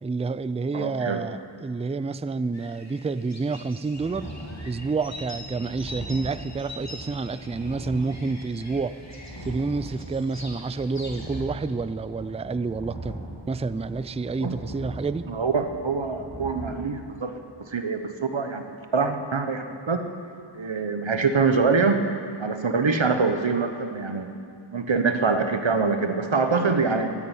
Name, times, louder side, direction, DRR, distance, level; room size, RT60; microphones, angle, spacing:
voice 1, 0.0-4.3 4.6-9.0 9.4-13.2 13.5-15.3, right 4 dB, 15° right, 14 dB, 0.3 m, -29 dB
voice 2, 0.7-1.2 14.4-14.6 15.3-17.3 17.6-18.6 18.9-20.0 20.5-22.0 22.4-24.3 24.7-27.1, right 4 dB, 70° right, 7 dB, 1.1 m, -24 dB
sound 1, 2.5-11.4, left 1 dB, 35° left, 2.3 m, -44 dB
sound 2, 4.0-16.7, equal, 55° left, 3.0 m, -40 dB
13.0 x 8.6 x 9.7 m, 2.4 s
wide cardioid pair, 40°, 47 cm